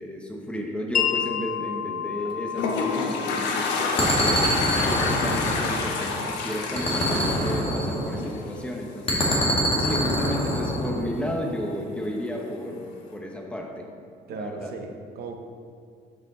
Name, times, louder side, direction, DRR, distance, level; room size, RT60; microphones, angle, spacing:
voice 1, 0.0-4.5 4.9-9.3 9.8-13.8 14.3-14.7, left 1 dB, 5° left, 0 dB, 1.2 m, -33 dB
Wind chime, 0.9-8.6, left 8 dB, 50° left, 0.9 m, -33 dB
Toilet flush, 2.2-8.6, left 4 dB, 85° left, 1.1 m, -28 dB
sound 1, 4.0-6.3 6.8-8.4 9.1-11.0, equal, 35° left, 2.1 m, -25 dB
voice 2, 14.3-15.4, right 4 dB, 70° right, 4 dB, 1.0 m, -36 dB
12.0 x 5.2 x 4.0 m, 2.3 s
cardioid pair, 110°, 17 cm